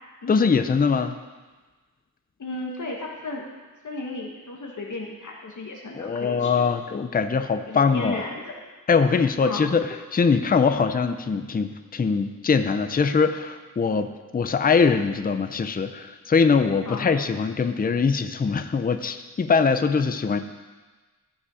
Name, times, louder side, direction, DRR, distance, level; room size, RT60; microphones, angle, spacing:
voice 1, 0.3-1.1 5.9-8.2 8.9-20.4, left 5 dB, 25° left, 9 dB, 0.5 m, -22 dB
voice 2, 2.4-3.5 3.8-6.6 7.7-8.5 9.4-9.7 10.7-10.8 16.8-17.1, left 2 dB, 55° left, -1 dB, 1.2 m, -34 dB
14.5 x 5.5 x 4.9 m, 1.3 s
wide cardioid pair, 125°, 35 cm